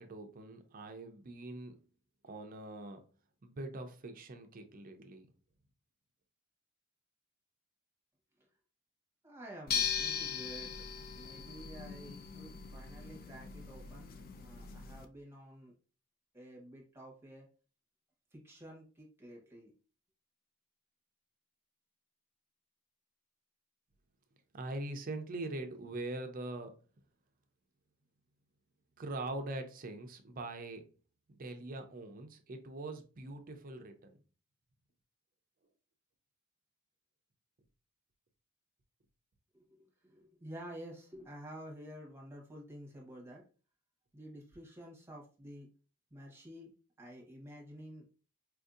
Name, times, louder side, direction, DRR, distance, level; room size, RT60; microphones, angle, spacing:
voice 1, 0.0-1.8 2.2-3.0 3.4-5.3 24.5-26.7 29.0-30.9 31.4-34.2, right 2 dB, 40° right, 0.5 m, -42 dB
voice 2, 9.2-10.7 11.1-15.7 16.3-17.5 18.3-19.7 39.5-43.4 44.1-45.7 46.1-46.7 47.0-48.0, equal, 10° right, 1.0 m, -50 dB
sound 1, 9.7-15.1, left 7 dB, 45° left, 0.4 m, -39 dB
4.4 x 2.6 x 2.4 m
head